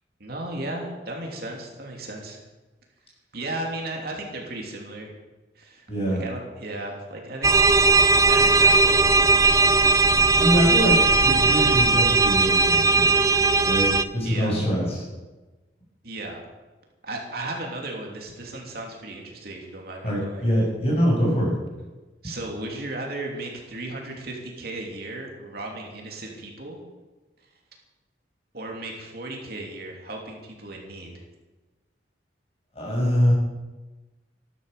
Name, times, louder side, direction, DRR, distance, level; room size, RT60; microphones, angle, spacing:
voice 1, 0.2-2.4 3.3-5.1 5.5-7.8 8.3-9.1 14.2-14.6 16.0-16.4 17.0-20.5 22.2-26.8 28.5-31.2, right 2 dB, 55° right, 0 dB, 3.1 m, -35 dB
voice 2, 5.9-6.2 10.4-13.2 13.6-15.1 20.0-21.6 32.8-33.3, equal, 35° left, -3 dB, 7.2 m, -23 dB
sound 1, 7.4-14.0, right 3 dB, 20° right, 0.5 m, -18 dB
14.5 x 12.0 x 6.7 m, 1.2 s
head